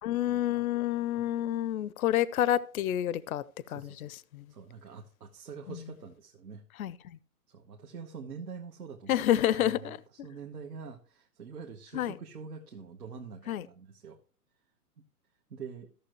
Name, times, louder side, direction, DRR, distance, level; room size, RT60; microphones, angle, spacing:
voice 1, 0.0-3.4 3.7-4.4 5.7-5.8 6.8-7.2 9.1-10.0 11.9-12.1 13.5-13.6, left 12 dB, 65° left, 0.6 m, -29 dB
voice 2, 3.6-4.2 4.5-6.6 7.5-9.2 9.5-14.2 15.5-15.9, right 5 dB, 80° right, 1.4 m, -45 dB
14.5 x 6.8 x 3.0 m
hypercardioid pair, 135°, 46 cm